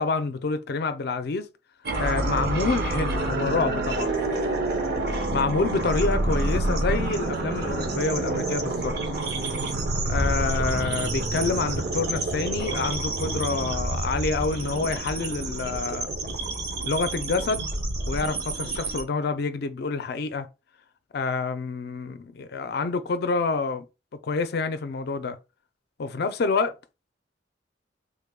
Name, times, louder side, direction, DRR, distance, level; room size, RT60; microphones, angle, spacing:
voice 1, 0.0-1.5 2.0-4.1 5.3-8.9 10.1-16.1 16.9-17.7 18.1-20.5 21.1-23.8 24.2-25.4 26.0-26.7, left 4 dB, 60° left, 0.4 m, -27 dB
sound 1, 1.8-19.0, right 2 dB, 60° right, 0.8 m, -28 dB
3.4 x 2.2 x 3.5 m
head